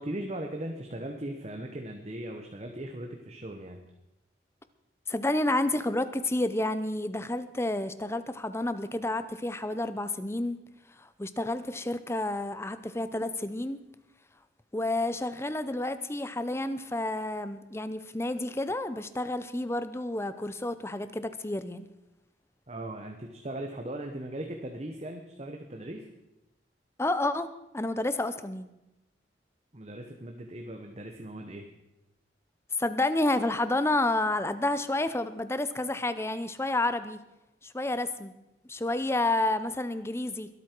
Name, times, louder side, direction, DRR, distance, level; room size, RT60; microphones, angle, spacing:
voice 1, 0.0-3.8 22.7-26.1 29.7-31.7, right 1 dB, 35° right, 3 dB, 1.1 m, -38 dB
voice 2, 5.1-10.6 10.9-13.8 14.7-21.9 27.0-28.7 32.8-37.2 37.6-38.3 38.7-40.5, left 2 dB, 15° left, 12 dB, 0.6 m, -30 dB
22.5 x 8.6 x 4.6 m, 0.92 s
head